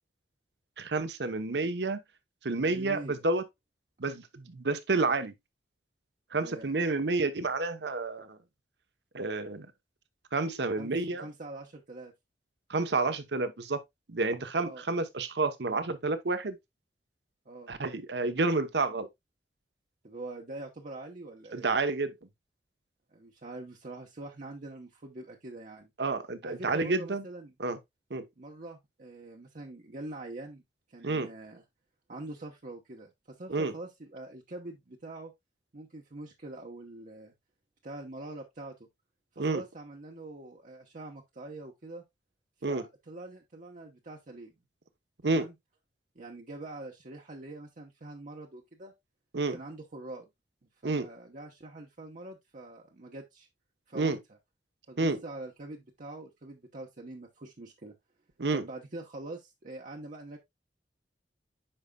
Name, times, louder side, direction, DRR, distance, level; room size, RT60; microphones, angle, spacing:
voice 1, 0.8-2.0 2.4-3.4 4.0-5.3 6.3-8.4 9.1-9.7 10.3-11.2 12.7-13.8 14.1-16.6 17.7-19.1 21.5-22.1 26.0-27.2 27.6-27.8 28.1-28.3 31.0-31.3 33.5-33.7 39.4-39.6 42.6-42.8 45.2-45.5 49.3-49.6 50.8-51.1 53.9-54.2 55.0-55.2 58.4-58.6, right 3 dB, 70° right, 0.9 m, -29 dB
voice 2, 2.7-3.2 6.4-6.7 10.8-12.1 14.6-14.8 17.4-17.7 20.0-21.7 23.1-25.9 26.4-27.5 28.4-30.6 30.9-31.6 32.1-35.3 35.7-37.3 37.8-38.7 39.3-42.0 42.7-44.5 45.2-45.5 46.1-48.9 49.5-50.3 50.8-53.5 53.9-54.2 54.9-57.9 58.5-60.4, right 2 dB, 45° right, 0.9 m, -44 dB
8.8 x 5.6 x 2.2 m
head